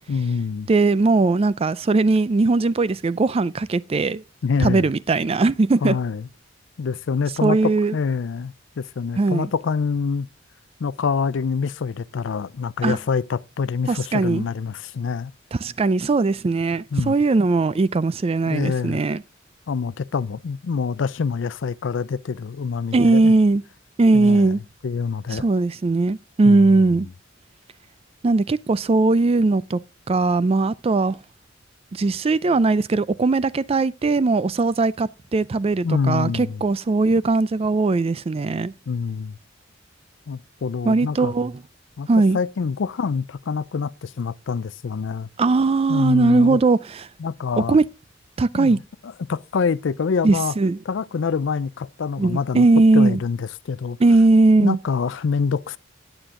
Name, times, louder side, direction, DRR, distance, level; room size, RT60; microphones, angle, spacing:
voice 1, 0.1-0.7 4.4-4.9 5.8-6.3 6.8-10.3 10.8-15.3 16.9-17.1 18.5-19.0 19.7-23.3 24.1-24.5 24.8-25.4 26.4-26.9 35.8-36.6 38.9-39.4 40.3-41.3 42.0-42.1 42.3-45.3 45.9-46.6 47.2-47.8 48.5-50.6 50.9-52.7 52.9-54.0 54.6-55.8, left 5 dB, 70° left, 0.4 m, -26 dB
voice 2, 0.7-4.2 4.6-6.0 7.4-7.9 9.2-9.5 12.8-13.0 13.9-14.4 15.6-19.2 22.9-23.6 24.0-24.6 25.3-27.1 28.2-29.8 30.1-31.2 31.9-38.7 40.9-41.5 42.1-42.4 45.4-46.8 47.6-47.8 48.4-48.8 50.2-50.8 52.2-53.2 54.0-54.8, right 3 dB, 30° right, 0.4 m, -19 dB
9.0 x 9.0 x 3.7 m
head